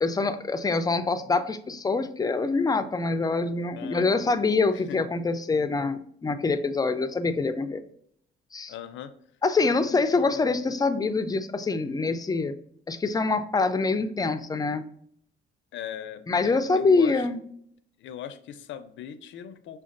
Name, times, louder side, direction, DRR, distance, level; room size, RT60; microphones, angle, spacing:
voice 1, 0.0-7.8 8.5-8.7 9.4-12.6 12.9-14.8 16.3-17.4, left 3 dB, 20° left, 10 dB, 0.4 m, -25 dB
voice 2, 3.8-4.3 4.7-5.0 8.7-9.1 9.6-10.4 15.7-17.3 18.0-19.8, left 9 dB, 75° left, 10 dB, 0.5 m, -40 dB
6.0 x 2.3 x 2.5 m, 0.67 s
cardioid pair, 90°, 20 cm